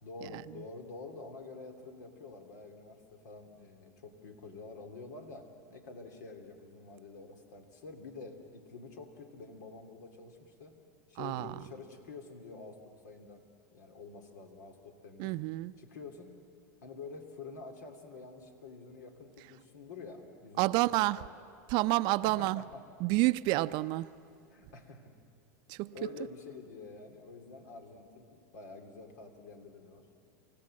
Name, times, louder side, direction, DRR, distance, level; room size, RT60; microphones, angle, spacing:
voice 1, 0.0-10.8 11.1-12.8 13.0-13.4 13.7-15.3 15.8-16.3 16.8-21.3 22.2-22.8 24.5-25.1 25.9-30.1, left 4 dB, 80° left, 2.8 m, -48 dB
voice 2, 11.2-11.6 15.2-15.7 20.6-21.2 21.7-22.6 23.0-24.1 25.7-25.9, right 19 dB, 55° right, 0.5 m, -29 dB
28.5 x 15.5 x 7.6 m
hypercardioid pair, 110°, 9 cm